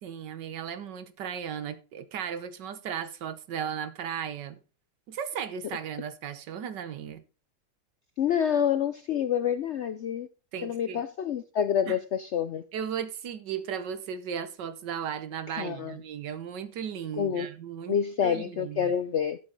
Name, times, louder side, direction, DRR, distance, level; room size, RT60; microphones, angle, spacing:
voice 1, 0.0-4.6 5.1-7.2 10.5-11.0 11.9-12.0 12.7-18.0 18.2-18.9, right 8 dB, 85° right, 1.7 m, -36 dB
voice 2, 8.2-10.3 10.6-12.6 15.5-16.0 17.2-17.5 17.9-19.4, left 8 dB, 70° left, 0.6 m, -27 dB
12.0 x 7.7 x 4.0 m
omnidirectional pair, 1.8 m